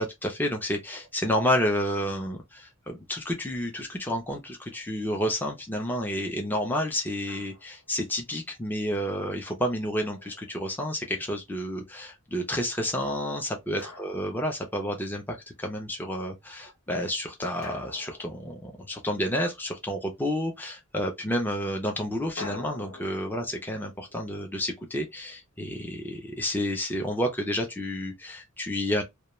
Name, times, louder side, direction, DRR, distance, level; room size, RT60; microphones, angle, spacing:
voice 1, 0.0-29.0, equal, 10° left, 0.4 m, -30 dB
Drum, 7.3-7.9 9.9-11.0 13.8-15.0 17.6-19.3 22.4-25.3, left 3 dB, 65° left, 0.8 m, -46 dB
2.2 x 2.1 x 2.9 m
head